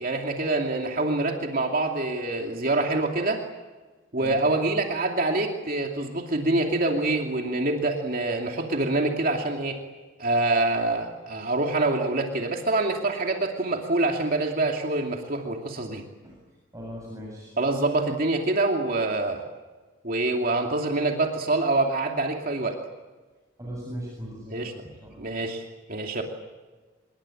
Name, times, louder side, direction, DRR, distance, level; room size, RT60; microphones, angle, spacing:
voice 1, 0.0-3.4 4.1-9.8 10.2-16.0 17.6-19.4 20.0-22.8 24.5-24.7 25.2-25.6 25.9-26.2, right 2 dB, 45° right, 2 dB, 2.6 m, -25 dB
voice 2, 16.7-17.5 23.6-25.3, equal, 15° right, -3 dB, 7.7 m, -39 dB
27.0 x 22.5 x 8.8 m, 1.3 s
head